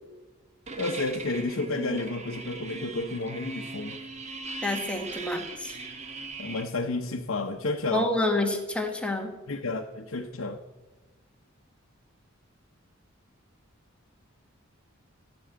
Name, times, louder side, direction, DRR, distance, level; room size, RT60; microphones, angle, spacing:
sound 1, 0.7-6.7, right 3 dB, 35° right, 1.2 m, -39 dB
voice 1, 0.8-4.0 6.4-8.1 9.5-10.6, left 2 dB, 80° left, 2 dB, 0.8 m, -31 dB
voice 2, 4.6-5.7 7.9-9.3, left 1 dB, 5° left, 2 dB, 1.5 m, -28 dB
15.0 x 6.2 x 8.8 m, 1.2 s
head